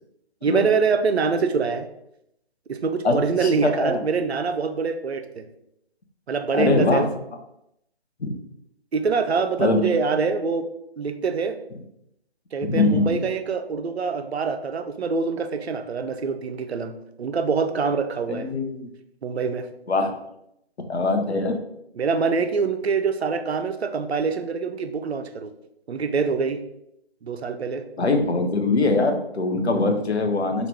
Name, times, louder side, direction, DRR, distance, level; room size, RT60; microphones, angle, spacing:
voice 1, 0.4-1.9 2.7-5.5 6.3-7.1 8.9-10.7 11.0-11.6 12.5-18.5 19.2-19.7 22.0-25.5 25.9-26.6 27.2-27.9 29.7-29.9, right 5 dB, 80° right, 8 dB, 0.5 m, -25 dB
voice 2, 3.0-4.0 6.5-7.0 8.2-8.3 9.6-9.9 12.6-13.2 18.3-18.9 19.9-20.1 20.9-21.6 28.0-30.7, left 3 dB, 80° left, 5 dB, 0.7 m, -22 dB
3.0 x 2.4 x 3.3 m, 0.79 s
figure-of-eight pair, 140°, 32 cm